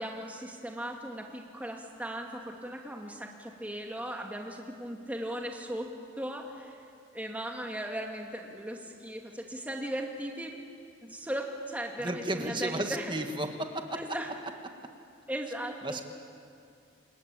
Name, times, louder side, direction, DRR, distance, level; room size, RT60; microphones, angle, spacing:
voice 1, 0.0-5.9 6.2-6.8 7.1-10.6 11.0-13.1 14.0-14.3 15.3-16.1, right 1 dB, 10° right, 1 dB, 2.5 m, -37 dB
voice 2, 12.0-14.0 15.8-16.0, right 1 dB, 25° right, 5 dB, 1.6 m, -33 dB
28.5 x 21.5 x 8.8 m, 2.4 s
head